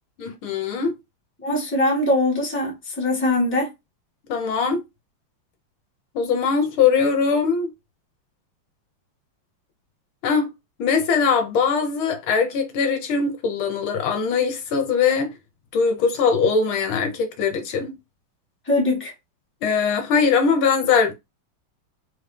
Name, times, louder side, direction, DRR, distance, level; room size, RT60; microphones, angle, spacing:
voice 1, 0.2-1.0 4.3-4.8 6.1-7.7 10.2-10.5 10.8-15.3 15.7-18.0 19.6-21.1, left 5 dB, 75° left, 1.6 m, -21 dB
voice 2, 1.4-3.7 18.6-19.1, left 1 dB, 5° left, 1.3 m, -22 dB
4.0 x 3.1 x 3.2 m
omnidirectional pair, 2.4 m